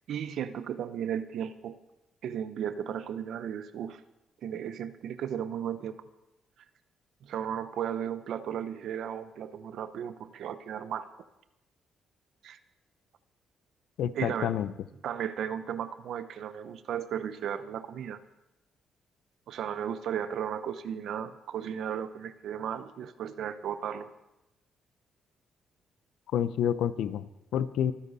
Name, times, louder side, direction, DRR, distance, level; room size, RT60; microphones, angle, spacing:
voice 1, 0.1-1.8 2.2-4.0 4.4-6.0 7.2-11.1 12.4-12.6 14.2-14.5 15.0-18.2 19.5-24.1, right 9 dB, 75° right, 12 dB, 0.8 m, -35 dB
voice 2, 14.0-14.7 26.3-27.9, left 9 dB, 80° left, 15 dB, 0.7 m, -29 dB
25.0 x 10.0 x 4.2 m, 0.92 s
cardioid pair, 90°, 0 cm